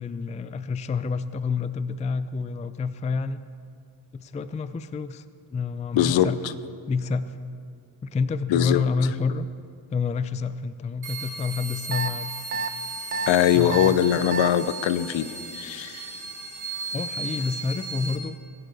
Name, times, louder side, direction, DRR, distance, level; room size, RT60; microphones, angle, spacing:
voice 1, 0.0-3.4 4.1-5.2 5.5-6.4 6.9-7.4 8.0-9.5 9.9-12.3 13.5-14.0 16.9-18.4, left 5 dB, 15° left, 13 dB, 0.4 m, -28 dB
voice 2, 5.9-6.3 8.5-8.8 13.3-15.3 15.5-16.2, left 11 dB, 65° left, 14 dB, 0.8 m, -21 dB
sound 1, 11.0-18.2, right 4 dB, 50° right, 2.6 m, -36 dB
sound 2, 11.9-12.1 12.5-12.7 13.1-13.3 13.7-13.9 14.3-14.5, right 4 dB, 20° right, 0.7 m, -28 dB
22.5 x 11.0 x 4.1 m, 2.4 s
cardioid pair, 85°, 49 cm